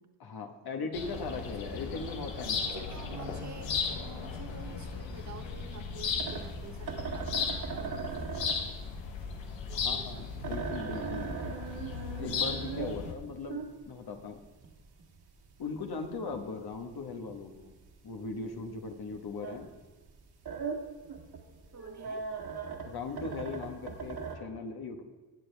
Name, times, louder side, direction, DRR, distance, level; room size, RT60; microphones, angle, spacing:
voice 1, 0.2-2.6 9.7-11.6 12.2-14.4 15.6-17.7 18.0-19.7 22.8-25.0, left 4 dB, 55° left, 4 dB, 1.5 m, -39 dB
sound 1, 0.9-13.1, left 5 dB, 85° left, 1.3 m, -36 dB
sound 2, 1.2-2.7 3.2-4.6 5.2-6.6 7.2-8.7 9.2-10.6 11.2-12.6, left 2 dB, 10° left, 2.0 m, -55 dB
voice 2, 2.7-8.6 9.7-10.4 21.7-22.3, right 4 dB, 40° right, 5 dB, 1.3 m, -49 dB
sound 3, 6.2-19.8 20.1-24.4, right 5 dB, 60° right, 2.0 m, -39 dB
17.5 x 7.1 x 3.4 m, 1.3 s
cardioid pair, 95°, 44 cm